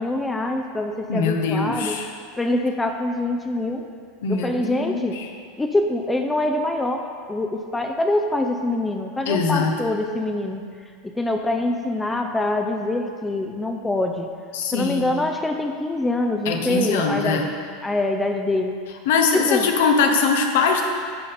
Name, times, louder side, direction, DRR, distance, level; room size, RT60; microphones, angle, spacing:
voice 1, 0.0-2.0 2.4-3.8 4.3-5.2 5.6-10.6 11.2-14.3 14.7-17.5 17.8-18.8 19.3-19.7, left 2 dB, 10° left, 4 dB, 0.5 m, -24 dB
voice 2, 1.1-2.1 4.2-5.3 9.3-9.7 14.5-15.2 16.4-17.5 19.1-20.8, left 5 dB, 75° left, 3 dB, 0.9 m, -22 dB
10.5 x 3.9 x 4.2 m, 2.1 s
hypercardioid pair, 100°, 0 cm